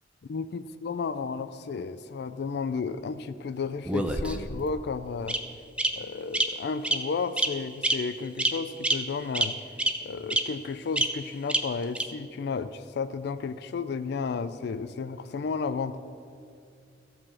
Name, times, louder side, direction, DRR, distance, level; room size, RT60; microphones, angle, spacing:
voice 1, 0.3-5.4 5.9-9.6 10.0-16.0, left 5 dB, 60° left, 13 dB, 0.4 m, -33 dB
Bird vocalization bird call bird song, 3.9-4.6 5.3-5.4 5.8-5.9 6.3-6.4 6.8-7.0 7.4-7.5 7.8-7.9 8.4-8.5 8.8-8.9 9.3-9.4 9.8-9.9 10.3-10.4 11.0-11.1 11.5-11.6 11.9-12.0, right 1 dB, 5° right, 0.5 m, -25 dB
14.0 x 4.9 x 7.3 m, 2.4 s
head